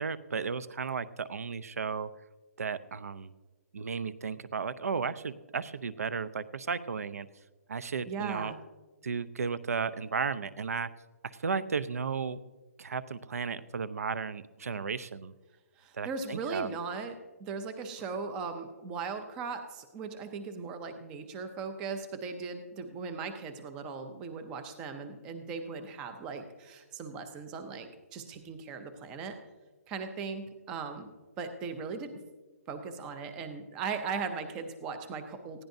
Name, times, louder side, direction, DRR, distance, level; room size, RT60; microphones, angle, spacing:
voice 1, 0.0-2.1 2.6-3.3 3.7-7.3 7.7-8.5 9.0-10.9 11.4-12.4 12.8-15.3 16.0-16.7, right 5 dB, 65° right, 15 dB, 0.7 m, -34 dB
voice 2, 8.1-8.6 15.8-29.4 29.9-31.1 31.4-32.2 32.7-35.7, right 5 dB, 10° right, 8 dB, 0.5 m, -38 dB
19.5 x 15.5 x 2.7 m, 1.2 s
hypercardioid pair, 180°, 9 cm